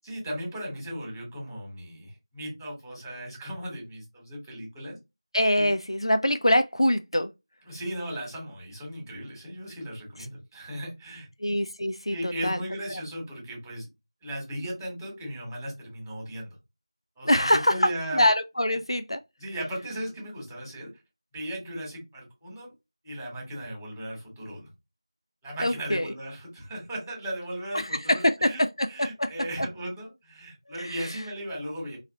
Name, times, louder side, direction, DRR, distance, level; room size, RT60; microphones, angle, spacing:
voice 1, 0.0-5.0 5.5-5.7 7.6-11.3 12.1-13.9 14.2-16.5 17.2-18.2 19.4-20.9 21.3-22.7 23.0-24.7 25.4-28.6 28.9-32.0, right 1 dB, ahead, 0.8 m, -36 dB
voice 2, 5.3-7.3 11.4-12.6 12.9-13.0 17.2-19.2 25.6-26.1 27.7-28.5 28.8-28.9 29.2-29.3 29.6-29.7 30.8-30.9, left 1 dB, 70° left, 0.4 m, -24 dB
3.2 x 2.4 x 2.6 m
figure-of-eight pair, 180°, 3 cm